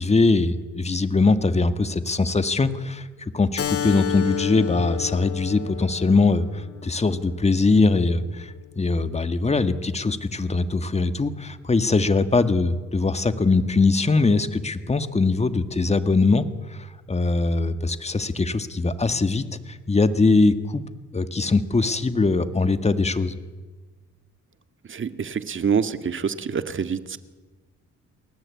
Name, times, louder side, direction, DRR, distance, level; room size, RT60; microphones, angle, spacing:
voice 1, 0.0-3.1 3.3-20.8 21.1-23.4, left 3 dB, 20° left, 10 dB, 1.9 m, -22 dB
Keyboard (musical), 3.6-8.7, left 9 dB, 50° left, 1.8 m, -32 dB
voice 2, 24.9-27.2, right 6 dB, 40° right, 10 dB, 1.8 m, -26 dB
29.5 x 20.5 x 8.7 m, 1.3 s
cardioid pair, 90°, 30 cm